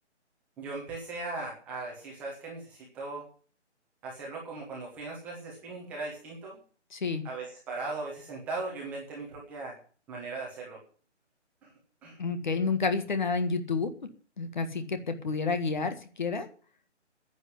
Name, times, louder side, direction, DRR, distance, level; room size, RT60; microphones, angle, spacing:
voice 1, 0.6-3.3 4.0-6.6 7.2-9.8 10.1-10.8 11.6-11.7 12.0-12.2, right 3 dB, 5° right, -4 dB, 1.2 m, -38 dB
voice 2, 6.9-7.2 12.2-13.9 14.4-16.5, left 4 dB, 40° left, 9 dB, 1.6 m, -29 dB
10.5 x 8.3 x 9.8 m, 0.43 s
hypercardioid pair, 170°, 36 cm